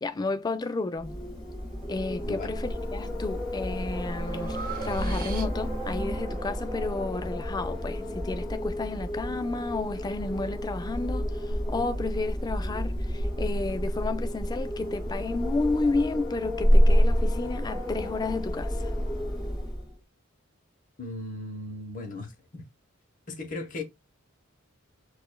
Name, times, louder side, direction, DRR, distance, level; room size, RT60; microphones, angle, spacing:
voice 1, 0.0-1.2 1.9-11.3 11.7-18.8, left 3 dB, 20° left, 0.3 m, -32 dB
Wind, 0.9-20.0, equal, ahead, 2.1 m, -29 dB
voice 2, 2.2-2.5 21.0-22.7 23.3-23.8, left 2 dB, 40° left, 1.0 m, -37 dB
Breathing, 2.7-3.2 3.6-5.9, right 7 dB, 40° right, 0.5 m, -42 dB
4.7 x 2.5 x 2.2 m
head